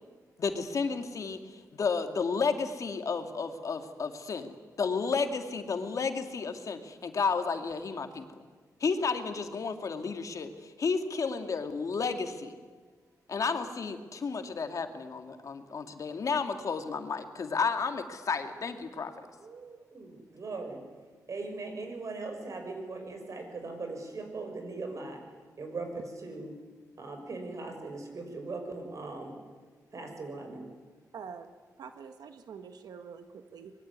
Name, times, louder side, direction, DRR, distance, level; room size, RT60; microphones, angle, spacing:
voice 1, 0.4-8.2 8.8-12.5 13.3-19.3, left 5 dB, 55° left, 6 dB, 2.3 m, -32 dB
voice 2, 19.4-20.8 21.3-25.2 25.6-26.5 27.0-29.4 29.9-30.6, right 3 dB, 50° right, 5 dB, 6.0 m, -39 dB
voice 3, 31.1-31.5 31.8-33.7, right 6 dB, 90° right, 8 dB, 1.6 m, -45 dB
24.5 x 21.5 x 9.6 m, 1.5 s
wide cardioid pair, 115°, 7 cm